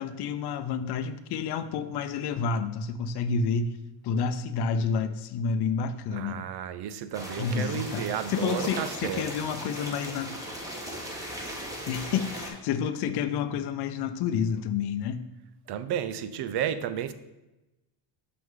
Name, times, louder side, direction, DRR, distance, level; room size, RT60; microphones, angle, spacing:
voice 1, 0.0-3.8 4.0-6.5 7.4-10.4 11.9-15.3, left 6 dB, 60° left, 0.6 m, -29 dB
voice 2, 6.1-9.3 15.7-17.1, right 9 dB, 60° right, 0.6 m, -32 dB
sound 1, 7.1-12.5, equal, 5° right, 1.3 m, -38 dB
6.1 x 6.1 x 3.7 m
cardioid pair, 120°, 45 cm